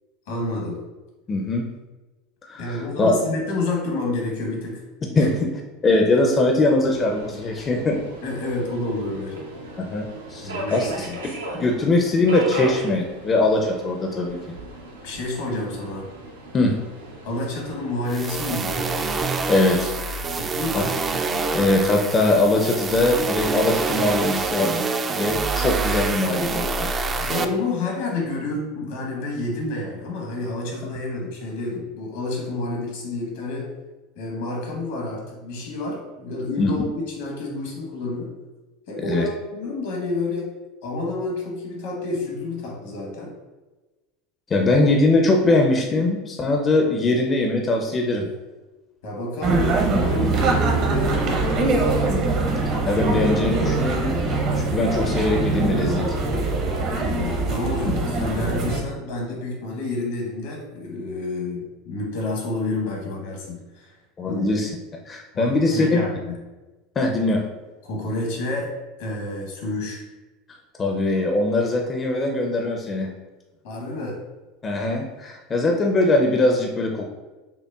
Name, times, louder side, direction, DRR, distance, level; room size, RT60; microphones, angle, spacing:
voice 1, 0.3-0.8 2.6-4.8 5.1-5.3 8.2-9.4 10.4-11.2 15.0-16.0 17.2-18.9 20.4-21.0 27.1-33.7 34.1-38.3 38.9-40.5 40.8-43.3 49.0-52.0 57.0-64.0 64.3-64.5 65.3-66.4 67.8-68.7 69.0-70.0 73.6-74.2, left 2 dB, 70° left, -1 dB, 1.1 m, -29 dB
voice 2, 1.3-1.7 2.4-3.1 5.2-5.3 5.8-8.0 9.9-11.1 11.5-14.4 16.5-16.7 19.5-20.2 20.5-20.8 21.5-24.8 25.1-26.9 36.6-36.7 39.0-39.3 44.5-48.3 52.1-52.3 52.8-56.2 57.9-58.0 64.2-64.7 65.1-66.1 67.0-67.4 70.8-73.1 74.6-77.1, left 2 dB, 30° left, 2 dB, 0.5 m, -21 dB
Subway metro underground, 6.8-20.6, equal, 85° right, 0.7 m, -37 dB
sound 1, 18.1-27.4, right 4 dB, 30° right, 0.3 m, -26 dB
sound 2, 49.4-58.8, right 3 dB, 50° right, 0.8 m, -23 dB
5.6 x 2.1 x 2.3 m, 1.2 s
hypercardioid pair, 85°, 0 cm